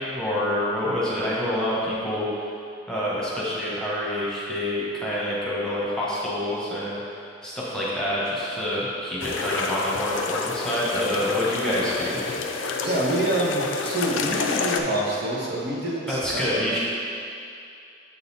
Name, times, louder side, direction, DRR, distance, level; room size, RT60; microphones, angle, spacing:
voice 1, 0.0-2.3 2.9-7.0 7.4-12.2 16.1-16.8, left 1 dB, 5° left, -8 dB, 1.2 m, -27 dB
sound 1, 9.2-14.8, left 4 dB, 90° left, 0.5 m, -29 dB
voice 2, 12.8-16.7, right 1 dB, 60° right, -5 dB, 1.0 m, -26 dB
7.3 x 4.0 x 4.1 m, 2.5 s
head